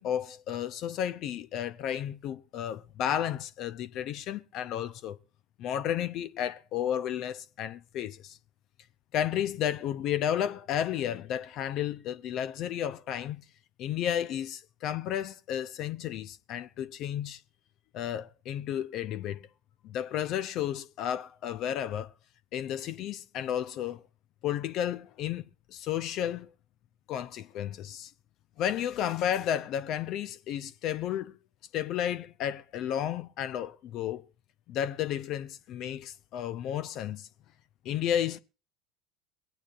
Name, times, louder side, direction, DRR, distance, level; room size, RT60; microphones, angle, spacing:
voice 1, 0.0-5.2 5.6-8.4 9.1-13.4 13.8-17.4 17.9-19.5 19.8-22.1 22.5-24.0 24.4-25.4 25.7-26.5 27.1-28.1 28.6-31.4 31.7-34.2 34.7-37.3 37.8-38.4, left 10 dB, 55° left, 0.6 m, -32 dB
23.0 x 8.9 x 2.5 m
hypercardioid pair, 70°, 0 cm